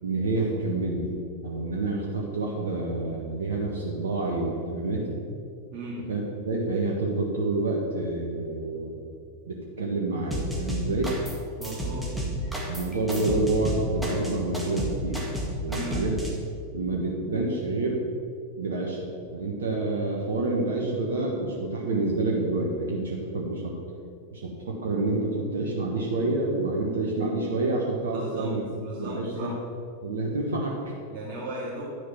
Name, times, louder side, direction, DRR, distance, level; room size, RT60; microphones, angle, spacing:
voice 1, 0.0-1.1 1.4-5.2 6.1-9.0 9.5-11.1 12.7-15.3 15.6-16.2 16.7-18.0 18.6-23.7 24.3-28.6 29.0-29.5 30.0-31.0, right 2 dB, 65° right, -2 dB, 1.3 m, -28 dB
sound 1, 10.3-11.4 11.6-16.3, equal, ahead, 1.9 m, -31 dB
voice 2, 11.6-12.2 15.7-16.0 28.1-28.5 28.8-29.5 31.1-31.8, right 2 dB, 40° right, -8 dB, 2.4 m, -36 dB
10.5 x 6.4 x 5.9 m, 2.5 s
figure-of-eight pair, 90°, 0 cm